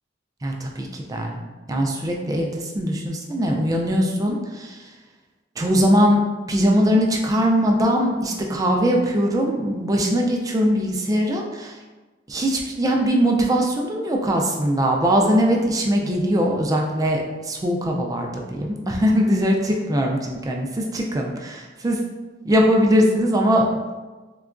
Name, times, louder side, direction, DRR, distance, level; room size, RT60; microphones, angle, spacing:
voice 1, 0.4-1.4 1.7-4.8 5.6-6.2 6.5-11.7 12.3-22.0 22.4-23.7, equal, 20° right, 0 dB, 0.3 m, -21 dB
3.7 x 2.2 x 2.4 m, 1.3 s
head